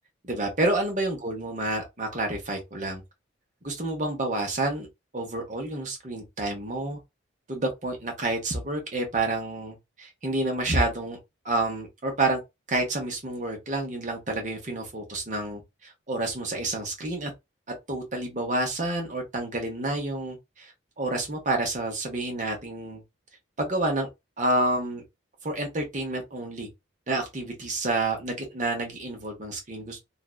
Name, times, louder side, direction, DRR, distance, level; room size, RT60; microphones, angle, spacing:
voice 1, 0.2-3.0 3.6-4.9 5.1-7.0 7.5-11.2 11.4-12.4 12.7-17.3 17.9-23.0 23.6-24.1 24.4-25.0 25.4-26.7 27.1-30.0, right 2 dB, 40° right, 0.8 m, -29 dB
2.5 x 2.2 x 2.3 m
head